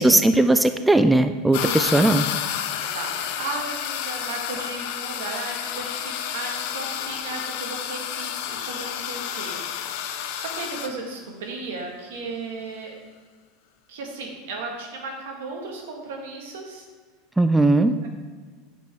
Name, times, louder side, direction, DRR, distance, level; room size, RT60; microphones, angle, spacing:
voice 1, 0.0-2.3 17.4-17.9, right 2 dB, 5° right, 9 dB, 0.3 m, -18 dB
sound 1, 1.5-10.9, left 9 dB, 70° left, 0.6 m, -30 dB
voice 2, 2.8-9.6 9.9-12.9 13.9-16.9 18.0-18.1, right 3 dB, 80° right, 1 dB, 1.6 m, -35 dB
7.7 x 6.1 x 3.5 m, 1.5 s
supercardioid pair, 110°, 0 cm